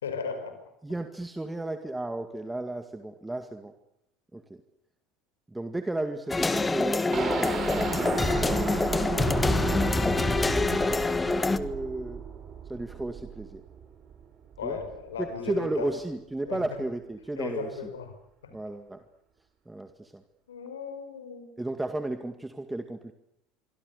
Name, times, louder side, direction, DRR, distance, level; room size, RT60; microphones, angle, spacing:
voice 1, 0.0-0.6 9.1-9.4 14.6-15.9 16.5-16.6 17.4-18.2 18.4-18.6 20.5-21.6, left 6 dB, 80° left, 8 dB, 5.2 m, -36 dB
voice 2, 0.8-3.7 4.3-4.6 5.5-8.7 9.4-10.4 11.1-12.2 12.6-13.6 14.6-14.8 15.2-17.8 18.5-19.0 19.7-20.2 21.6-23.1, right 2 dB, 10° right, 8 dB, 2.0 m, -34 dB
sound 1, 6.3-11.6, left 3 dB, 15° left, 1.8 m, -26 dB
sound 2, 7.1-15.0 15.3-15.4 15.8-15.9, right 7 dB, 40° right, 5.7 m, -34 dB
26.0 x 24.5 x 6.8 m, 0.85 s
figure-of-eight pair, 70°, 0 cm